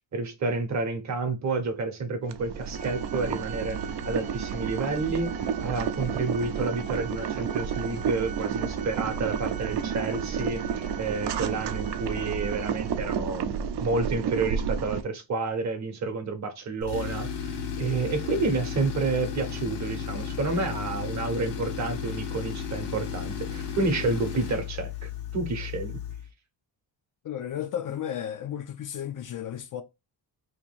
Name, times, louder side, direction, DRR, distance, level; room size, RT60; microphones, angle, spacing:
voice 1, 0.1-3.8 4.0-5.3 5.6-26.0, right 3 dB, 40° right, 0.8 m, -30 dB
Boiling, 2.2-15.0, right 7 dB, 70° right, 0.6 m, -31 dB
Organ, 2.7-13.3, right 7 dB, 20° right, 0.4 m, -43 dB
Tools, 16.8-26.3, left 7 dB, 70° left, 0.9 m, -34 dB
voice 2, 27.2-29.8, left 10 dB, 50° left, 0.5 m, -33 dB
2.9 x 2.6 x 4.4 m
wide cardioid pair, 165°, 42 cm